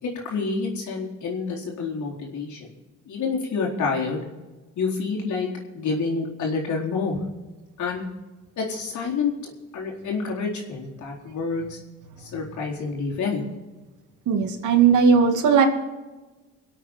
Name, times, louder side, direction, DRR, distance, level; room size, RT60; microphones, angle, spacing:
voice 1, 0.0-2.7 3.1-4.2 4.8-5.5 5.7-7.2 7.8-8.0 8.6-11.8 12.2-13.4, left 4 dB, 70° left, -2 dB, 4.3 m, -28 dB
voice 2, 14.3-15.7, right 6 dB, 75° right, 5 dB, 2.4 m, -17 dB
25.0 x 8.4 x 4.5 m, 1.2 s
cardioid pair, 90°, 30 cm